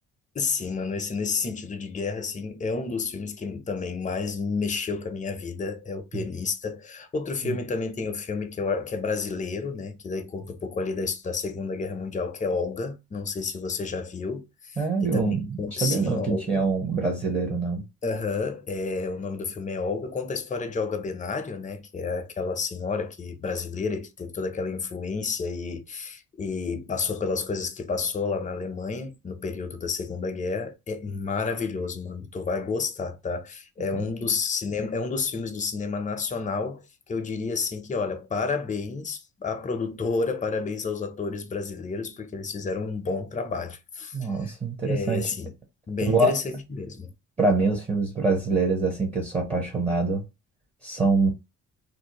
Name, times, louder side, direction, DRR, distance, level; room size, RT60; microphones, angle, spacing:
voice 1, 0.3-14.8 15.0-16.7 18.0-44.5 44.8-45.5 45.9-47.1, left 4 dB, 25° left, 0.5 m, -30 dB
voice 2, 14.8-17.8 33.9-34.1 44.1-45.3 46.0-46.3 47.4-50.2 50.8-51.3, right 3 dB, 20° right, 0.9 m, -25 dB
2.5 x 2.0 x 2.8 m
cardioid pair, 90°, 30 cm